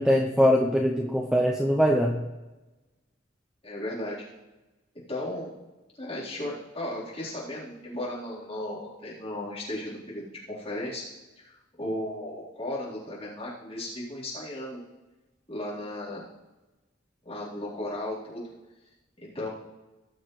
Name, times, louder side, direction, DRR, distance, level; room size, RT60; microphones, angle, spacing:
voice 1, 0.0-2.2, equal, 5° right, -1 dB, 0.8 m, -22 dB
voice 2, 3.6-4.3 5.1-5.6 6.0-11.0 11.4-14.8 15.5-16.2 17.2-18.4 19.2-19.5, left 1 dB, 30° left, -8 dB, 4.1 m, -35 dB
19.0 x 7.2 x 3.3 m, 1.1 s
head